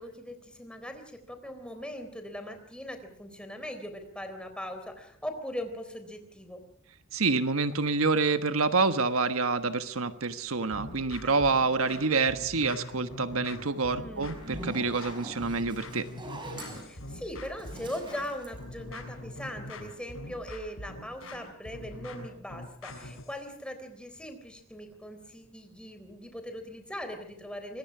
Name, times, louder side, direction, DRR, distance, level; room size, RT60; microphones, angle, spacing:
voice 1, 0.0-6.6 11.2-11.6 14.0-14.4 16.8-27.8, equal, 5° left, 7 dB, 3.7 m, -40 dB
voice 2, 7.1-16.1, right 4 dB, 80° right, 9 dB, 1.3 m, -27 dB
sound 1, 10.7-23.4, left 1 dB, 80° left, 6.8 m, -43 dB
Zipper (clothing), 14.2-19.4, right 1 dB, 20° right, 6.0 m, -43 dB
25.5 x 21.5 x 6.1 m, 0.66 s
head